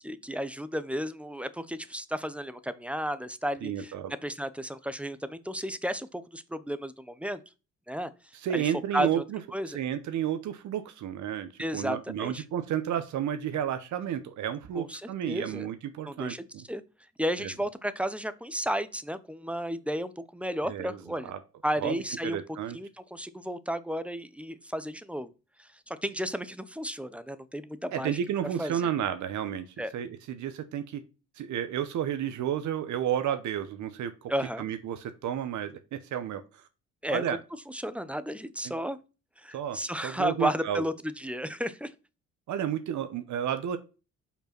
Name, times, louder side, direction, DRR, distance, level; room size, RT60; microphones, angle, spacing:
voice 1, 0.0-3.9 4.2-7.4 7.9-8.1 8.5-9.2 9.5-9.8 11.6-12.4 14.8-15.7 16.0-16.8 17.2-21.3 21.6-22.4 22.7-25.3 25.6-28.2 28.6-28.9 29.8-29.9 34.3-34.7 37.0-37.2 37.7-39.0 39.4-41.9, equal, 5° right, 14 dB, 0.7 m, -33 dB
voice 2, 3.6-4.1 8.4-9.4 9.7-16.6 17.4-17.5 20.6-21.0 21.2-21.4 21.8-22.0 22.2-22.8 27.9-29.7 29.9-31.0 31.4-34.3 34.6-36.6 37.1-37.4 38.6-38.7 39.5-40.8 42.5-43.8, right 9 dB, 75° right, 10 dB, 0.9 m, -32 dB
5.6 x 4.4 x 5.9 m, 0.31 s
cardioid pair, 90°, 30 cm